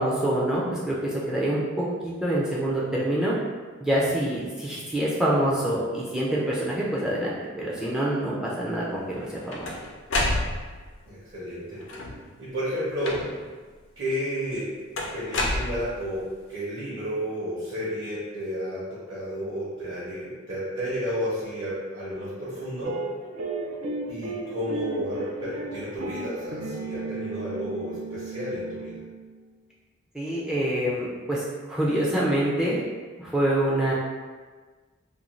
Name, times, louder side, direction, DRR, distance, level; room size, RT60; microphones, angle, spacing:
voice 1, 0.0-3.3 3.8-9.7 30.1-32.8 33.2-33.9, right 1 dB, 5° right, -6 dB, 0.3 m, -26 dB
sound 1, 9.1-10.9 11.8-12.3 13.0-13.6 15.0-16.2, left 2 dB, 60° left, 0.4 m, -29 dB
voice 2, 11.1-11.8 12.4-13.2 14.0-14.7 15.1-23.0 24.1-29.0, equal, 60° right, -10 dB, 0.8 m, -32 dB
sound 2, 22.8-29.4, right 3 dB, 90° right, 0.4 m, -34 dB
2.5 x 2.2 x 3.0 m, 1.4 s
head